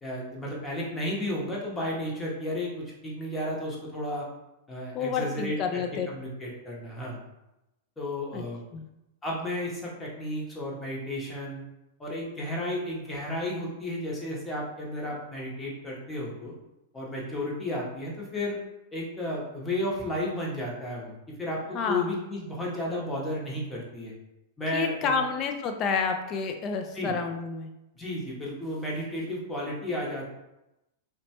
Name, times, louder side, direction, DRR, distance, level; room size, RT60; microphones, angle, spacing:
voice 1, 0.0-4.3 4.7-7.2 8.0-8.6 9.2-11.6 12.0-16.5 16.9-18.6 18.9-24.1 24.6-25.2 26.9-27.2 28.0-30.3, left 1 dB, 15° left, -4 dB, 0.9 m, -33 dB
voice 2, 4.9-6.1 8.3-8.4 8.7-8.9 21.7-22.2 24.7-27.7, left 5 dB, 40° left, 5 dB, 0.4 m, -29 dB
2.9 x 2.2 x 2.8 m, 0.93 s
hypercardioid pair, 105°, 0 cm